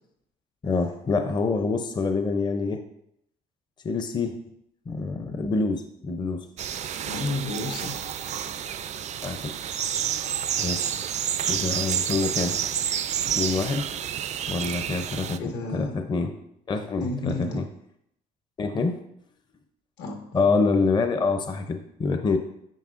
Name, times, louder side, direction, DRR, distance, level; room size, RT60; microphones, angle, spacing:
voice 1, 0.6-2.8 3.8-4.4 4.9-6.4 9.2-9.5 10.6-10.9 11.4-12.6 13.3-14.0 14.5-16.3 16.7-17.7 18.6-19.0 20.3-22.4, left 4 dB, 25° left, 6 dB, 0.6 m, -26 dB
sound 1, 6.6-15.4, right 9 dB, 45° right, 0.4 m, -29 dB
voice 2, 7.1-8.1 15.4-15.9 17.0-17.6 20.0-20.4, left 2 dB, 85° left, 1 dB, 1.6 m, -32 dB
9.2 x 5.5 x 2.5 m, 0.75 s
cardioid pair, 110°, 17 cm